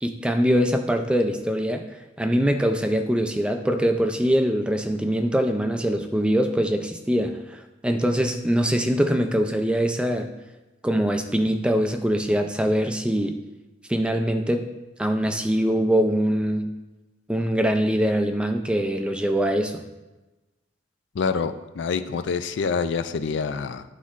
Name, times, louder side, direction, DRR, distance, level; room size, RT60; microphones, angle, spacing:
voice 1, 0.0-1.9 2.2-10.3 10.8-13.4 13.9-14.7 15.0-16.6 17.3-19.8, equal, 5° right, 6 dB, 0.3 m, -23 dB
voice 2, 21.1-23.8, left 5 dB, 70° left, 11 dB, 0.4 m, -26 dB
11.0 x 4.0 x 2.5 m, 1.1 s
head